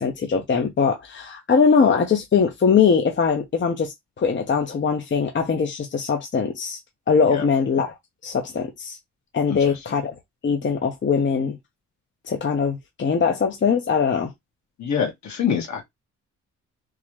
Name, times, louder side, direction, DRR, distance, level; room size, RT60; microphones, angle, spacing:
voice 1, 0.0-6.8 7.1-7.9 8.2-9.0 9.3-10.1 10.4-11.6 12.3-14.3, left 6 dB, 40° left, 0.9 m, -21 dB
voice 2, 9.5-10.0 14.8-15.9, left 7 dB, 65° left, 1.9 m, -26 dB
3.7 x 2.8 x 3.1 m
cardioid pair, 95°, 30 cm